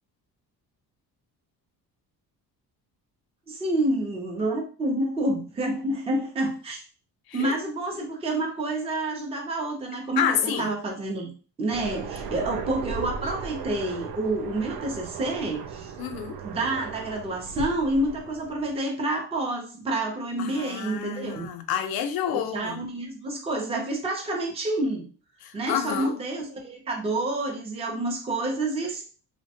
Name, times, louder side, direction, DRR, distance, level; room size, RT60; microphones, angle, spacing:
voice 1, 3.5-6.8 7.3-11.3 11.6-15.9 16.4-21.5 22.3-25.1 25.5-29.0, right 2 dB, 15° right, 0.5 m, -28 dB
voice 2, 10.2-10.7 16.0-16.4 20.4-22.8 25.4-26.1, left 9 dB, 70° left, 0.6 m, -29 dB
Aircraft, 11.7-18.8, right 5 dB, 70° right, 0.5 m, -37 dB
3.2 x 2.1 x 2.7 m
cardioid pair, 160°, 37 cm